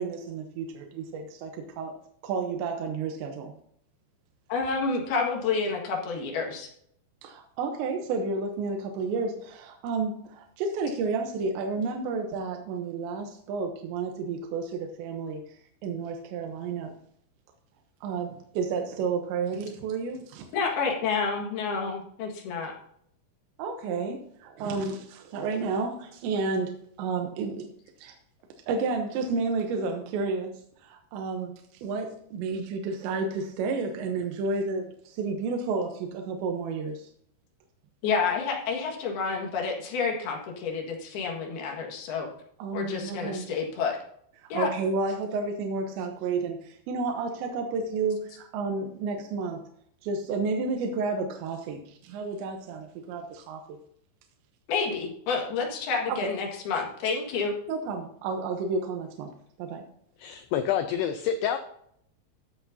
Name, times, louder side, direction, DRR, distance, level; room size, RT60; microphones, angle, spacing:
voice 1, 0.0-1.9 2.2-3.5 7.2-15.4 15.8-16.9 18.0-20.5 23.6-26.7 27.0-27.7 28.0-28.1 28.7-30.5 30.8-31.5 31.8-37.1 42.6-43.5 44.4-49.6 50.0-53.8 56.1-56.3 57.7-59.3 59.6-59.8, right 4 dB, 75° right, 3 dB, 3.1 m, -31 dB
voice 2, 4.5-6.7 20.5-22.7 38.0-42.3 42.7-44.0 44.5-44.7 54.7-57.5, left 5 dB, 65° left, 0 dB, 3.4 m, -29 dB
voice 3, 60.2-61.6, left 9 dB, 85° left, 8 dB, 2.4 m, -27 dB
14.0 x 8.3 x 2.7 m, 0.68 s
omnidirectional pair, 5.4 m